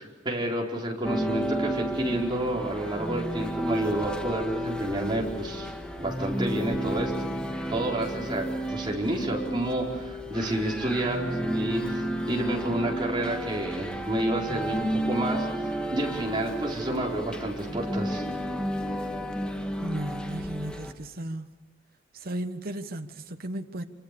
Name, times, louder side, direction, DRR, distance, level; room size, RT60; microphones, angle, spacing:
voice 1, 0.0-5.7 6.0-7.1 7.7-15.5 15.9-18.2, right 1 dB, 25° right, 4.7 m, -29 dB
sound 1, 1.0-20.9, equal, 5° left, 1.7 m, -32 dB
voice 2, 19.8-21.5 22.1-23.8, right 1 dB, 50° right, 1.1 m, -35 dB
26.5 x 26.5 x 6.9 m
head